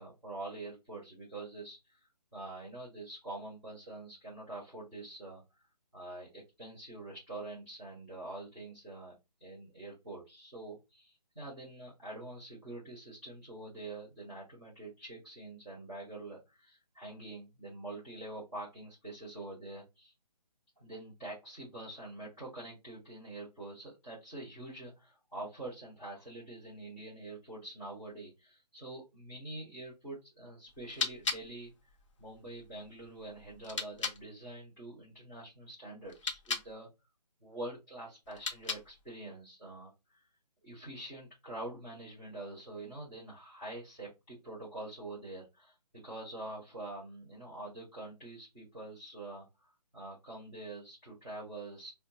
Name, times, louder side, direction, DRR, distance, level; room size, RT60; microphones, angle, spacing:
voice 1, 0.0-2.0 2.3-5.7 5.9-9.1 9.4-20.1 20.8-31.7 32.2-36.9 37.4-40.3 40.6-51.9, right 2 dB, 5° left, -13 dB, 0.4 m, -45 dB
sound 1, 30.7-34.2 36.0-36.7 38.3-39.1, left 4 dB, 45° left, 0.7 m, -39 dB
3.9 x 2.1 x 2.8 m, 0.24 s
figure-of-eight pair, 155°, 21 cm